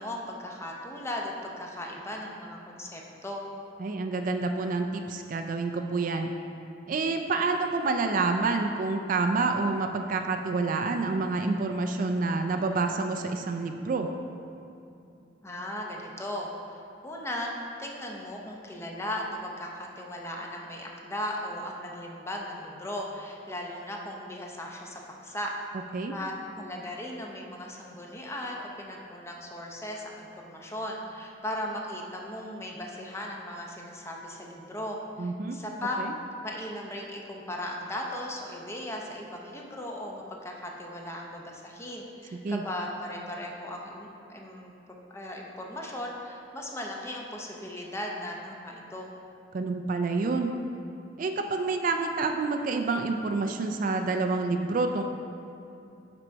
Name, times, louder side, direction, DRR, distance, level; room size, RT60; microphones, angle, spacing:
voice 1, 0.0-3.5 15.4-17.5 17.8-25.5 26.1-36.0 36.4-44.7 45.1-49.1, left 1 dB, 15° left, -1 dB, 0.6 m, -37 dB
voice 2, 3.8-6.3 6.9-14.1 25.9-26.1 35.2-35.6 36.0-36.1 42.4-42.6 49.5-50.5 51.2-55.0, right 3 dB, 45° right, 5 dB, 0.3 m, -28 dB
5.9 x 5.2 x 4.5 m, 2.6 s
head